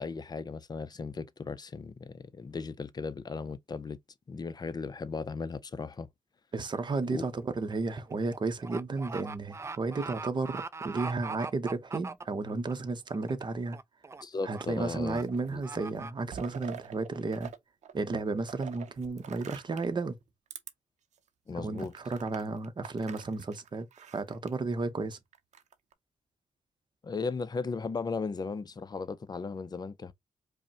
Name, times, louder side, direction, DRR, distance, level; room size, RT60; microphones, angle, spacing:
voice 1, 0.0-4.0 4.3-6.1 7.1-7.2 14.2-15.2 15.5-15.6 21.5-21.9 27.0-30.1, left 4 dB, 35° left, 0.5 m, -36 dB
voice 2, 6.5-13.8 14.4-17.5 17.9-20.2 21.6-25.2, right 3 dB, 40° right, 0.8 m, -33 dB
sound 1, 6.6-6.9 7.2-12.7 13.1-13.5 13.7-14.2 14.5-14.6 15.0-15.2 15.6-16.1, right 4 dB, 25° right, 0.3 m, -41 dB
sound 2, 14.9-15.6 15.9-17.6 17.8-20.0 20.5-20.7 21.2-21.3 21.8-24.5 25.3-25.9, right 9 dB, 80° right, 0.6 m, -46 dB
5.1 x 2.1 x 2.8 m
cardioid pair, 85°, 12 cm